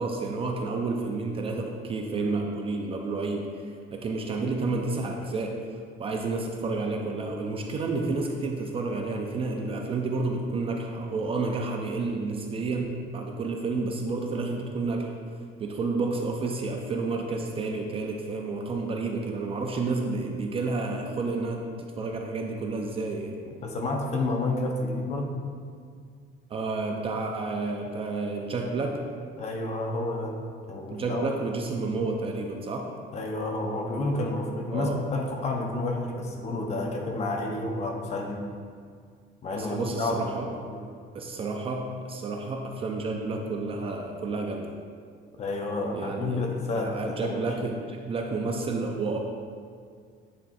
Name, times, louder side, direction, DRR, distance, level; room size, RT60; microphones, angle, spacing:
voice 1, 0.0-5.6 6.0-15.1 15.6-21.6 22.0-23.3 26.5-29.0 30.9-32.9 34.7-35.0 39.6-40.5 41.1-44.7 45.9-49.2, right 3 dB, 30° right, 2 dB, 0.4 m, -30 dB
voice 2, 23.5-25.3 29.4-30.4 30.7-31.3 33.1-38.4 39.4-40.3 40.7-40.8 45.4-47.5, left 2 dB, 35° left, 1 dB, 0.7 m, -30 dB
8.6 x 3.6 x 4.1 m, 2.1 s
cardioid pair, 170°, 20 cm